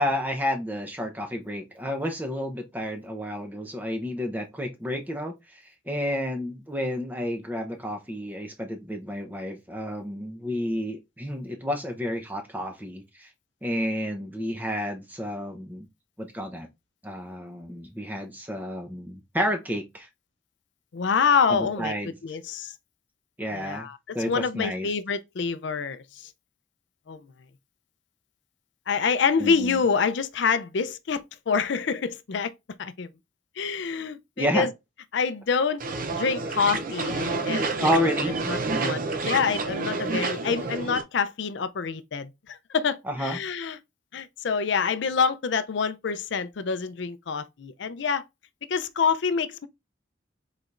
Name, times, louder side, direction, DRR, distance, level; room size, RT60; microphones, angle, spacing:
voice 1, 0.0-13.3 13.6-15.9 16.2-16.7 17.0-20.1 21.5-22.2 23.4-23.9 24.1-24.9 29.4-29.8 34.4-34.7 37.8-38.3 38.7-39.0 43.1-43.4, equal, 10° right, 0.7 m, -30 dB
voice 2, 20.9-21.9 22.2-22.7 23.5-24.0 24.3-26.3 27.1-27.3 28.9-32.5 32.8-33.1 33.6-34.7 35.1-35.8 36.1-38.1 38.5-38.6 38.8-39.0 39.2-43.8 44.1-48.2 48.7-49.7, left 5 dB, 60° left, 0.4 m, -26 dB
sound 1, 35.8-41.0, right 3 dB, 40° right, 0.6 m, -29 dB
4.9 x 4.1 x 2.5 m
head